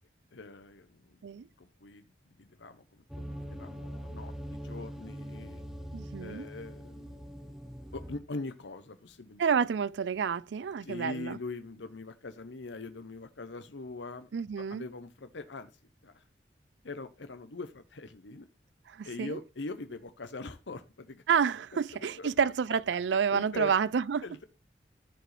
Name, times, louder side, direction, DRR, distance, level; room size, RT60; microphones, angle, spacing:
voice 1, 0.3-1.2 1.6-2.1 2.4-2.8 3.2-5.6 6.2-9.4 10.8-14.3 14.7-15.7 16.0-16.2 16.8-18.5 19.0-21.2 21.7-21.8 22.2-22.3 23.3-23.7 24.2-24.4, left 3 dB, 85° left, 0.8 m, -42 dB
sound 1, 3.1-8.2, equal, ahead, 0.8 m, -42 dB
voice 2, 5.9-6.5 9.4-11.4 14.3-14.8 18.9-19.4 21.3-24.2, right 6 dB, 80° right, 0.4 m, -29 dB
14.0 x 4.9 x 3.3 m
head